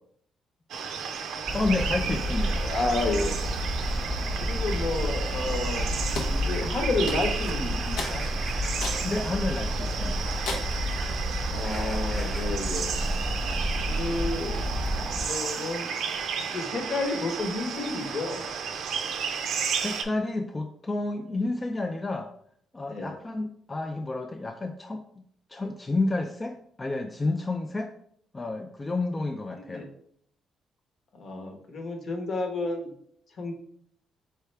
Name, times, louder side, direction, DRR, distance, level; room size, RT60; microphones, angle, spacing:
sound 1, 0.7-20.0, right 6 dB, 75° right, 0.5 m, -33 dB
voice 1, 1.5-2.7 9.0-10.3 19.8-22.3 22.7-25.0 25.5-27.9 28.3-29.9, left 2 dB, 25° left, 5 dB, 0.3 m, -30 dB
sound 2, 1.5-15.3, equal, 10° right, 0.9 m, -30 dB
voice 2, 2.6-3.4 4.4-5.9 6.3-8.2 11.5-12.9 13.8-14.6 15.2-15.9 16.5-18.5 22.9-23.1 29.7-29.9 31.1-32.9 33.4-33.5, left 2 dB, 55° left, 3 dB, 1.0 m, -31 dB
sound 3, 6.2-6.4 7.1-7.5 8.0-8.2 8.8-9.1 9.6-9.7 10.5-10.8, left 3 dB, 85° left, 0.8 m, -34 dB
4.4 x 3.5 x 3.3 m, 0.66 s
cardioid pair, 90°, 0 cm